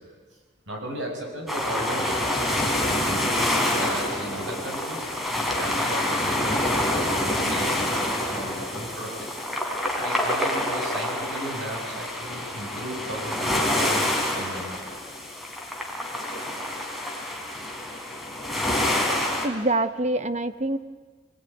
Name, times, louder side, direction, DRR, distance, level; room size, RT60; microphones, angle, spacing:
voice 1, 0.7-2.1 3.0-5.1 5.5-6.7 7.1-9.3 10.0-14.8, right 1 dB, 85° right, 1 dB, 7.3 m, -36 dB
sound 1, 1.5-19.5, left 1 dB, ahead, 3.4 m, -27 dB
voice 2, 19.4-20.8, right 2 dB, 40° right, 12 dB, 1.0 m, -25 dB
24.5 x 20.5 x 9.2 m, 1.4 s
head